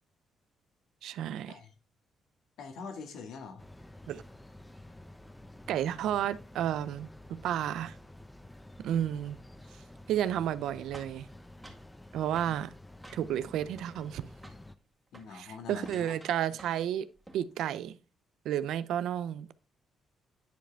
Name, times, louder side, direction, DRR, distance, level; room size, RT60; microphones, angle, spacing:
voice 1, 1.0-1.5 4.1-4.2 5.7-8.0 8.8-9.4 10.1-11.3 12.1-12.7 13.1-14.2 15.3-17.1 17.3-18.0 18.4-19.5, right 10 dB, 80° right, 0.5 m, -32 dB
voice 2, 2.6-3.7 12.5-12.6 15.1-16.1, left 5 dB, 75° left, 1.7 m, -44 dB
sound 1, 3.6-14.8, left 1 dB, 10° left, 0.7 m, -51 dB
sound 2, 10.9-11.9 12.4-12.6 13.0-13.5 13.8-14.2 14.4-14.7 15.1-15.3 15.8-16.9 17.1-17.5, right 1 dB, 10° right, 1.9 m, -52 dB
10.0 x 5.0 x 3.4 m
cardioid pair, 90°, 0 cm